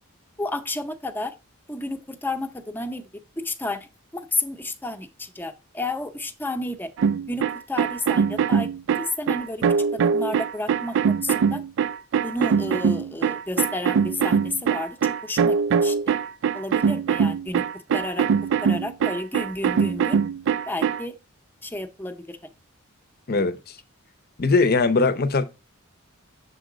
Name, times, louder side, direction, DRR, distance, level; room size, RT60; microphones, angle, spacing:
voice 1, 0.4-1.3 1.7-3.0 3.4-3.9 4.1-6.9 7.3-8.7 9.0-9.6 9.9-11.6 12.2-15.0 15.2-16.2 16.5-17.6 17.9-18.3 18.6-20.2 20.7-21.1 21.6-22.5 23.3-23.4, left 2 dB, 10° left, 0.6 m, -31 dB
sound 1, 7.0-21.0, right 6 dB, 60° right, 0.3 m, -22 dB
voice 2, 23.3-23.8 24.4-25.4, left 3 dB, 45° left, 0.7 m, -20 dB
6.9 x 3.7 x 5.0 m
head